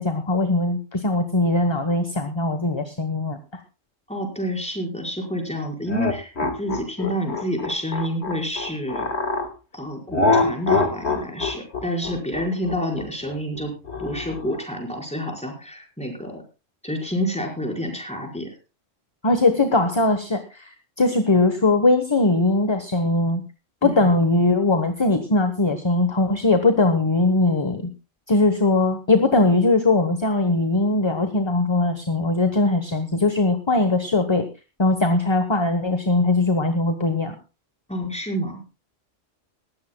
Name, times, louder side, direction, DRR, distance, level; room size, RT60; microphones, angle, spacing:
voice 1, 0.0-3.4 19.2-20.7 21.0-23.4 23.8-27.9 28.3-34.5 34.8-37.3, left 2 dB, 25° left, 8 dB, 1.1 m, -20 dB
voice 2, 4.1-9.1 9.7-13.7 14.0-16.4 16.8-18.5 23.8-24.1 37.9-38.6, equal, 5° left, 0 dB, 4.9 m, -28 dB
sound 1, 5.9-9.5 10.1-14.6, left 3 dB, 55° left, 2.1 m, -24 dB
19.5 x 15.5 x 2.3 m, 0.30 s
omnidirectional pair, 1.3 m